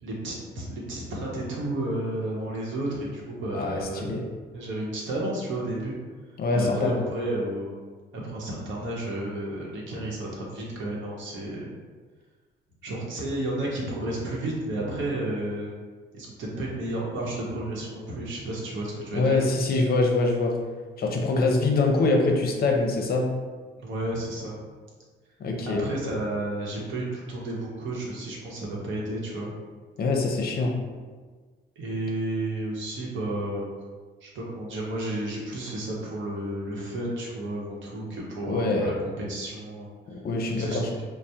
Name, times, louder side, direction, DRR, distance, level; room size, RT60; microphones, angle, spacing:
voice 1, 0.0-4.1 4.5-6.0 6.5-7.8 8.1-11.7 12.8-15.7 16.1-19.4 23.8-24.5 25.7-29.5 31.8-33.6 34.2-39.9 40.6-41.0, right 1 dB, 75° right, -3 dB, 0.8 m, -32 dB
voice 2, 3.5-4.2 6.4-6.9 19.1-20.5 21.0-23.3 25.4-25.8 30.0-30.7 38.4-38.9 40.1-40.8, left 3 dB, 50° left, 1 dB, 0.6 m, -24 dB
3.3 x 2.0 x 2.7 m, 1.4 s
cardioid pair, 90°, 20 cm